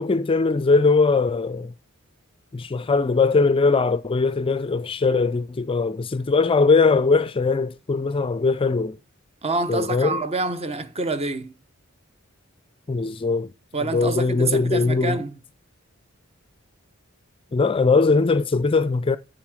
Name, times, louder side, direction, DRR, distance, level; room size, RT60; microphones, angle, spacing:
voice 1, 0.0-1.7 2.5-9.0 9.7-10.2 12.9-13.5 13.9-15.2 17.5-19.2, left 4 dB, 25° left, 0.4 m, -20 dB
voice 2, 9.4-11.5 13.7-15.4, right 3 dB, 30° right, 0.9 m, -27 dB
8.1 x 7.1 x 4.8 m
head